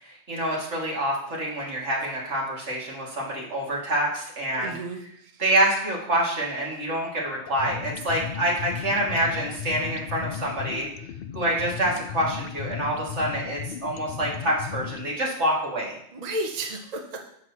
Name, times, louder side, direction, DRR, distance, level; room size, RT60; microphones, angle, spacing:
voice 1, 0.0-4.7 5.4-10.9 11.3-16.0, right 1 dB, 85° right, -4 dB, 2.5 m, -26 dB
voice 2, 4.6-5.4 16.1-17.3, right 1 dB, 40° right, 3 dB, 0.9 m, -33 dB
sound 1, 7.5-15.1, left 8 dB, 60° left, 0.7 m, -36 dB
9.9 x 7.9 x 2.9 m, 0.70 s
omnidirectional pair, 1.2 m